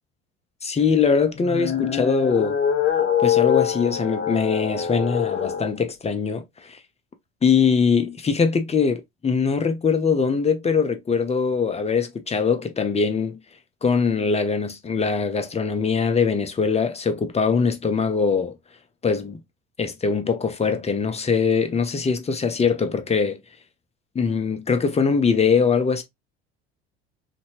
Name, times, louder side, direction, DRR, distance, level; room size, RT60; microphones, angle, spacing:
voice 1, 0.6-2.6 3.2-6.8 7.4-13.4 13.8-18.5 19.0-19.4 19.8-23.4 24.2-26.0, left 5 dB, 20° left, 0.8 m, -22 dB
sound 1, 1.3-5.7, left 9 dB, 35° left, 1.1 m, -24 dB
3.0 x 2.7 x 2.9 m
hypercardioid pair, 70°, 32 cm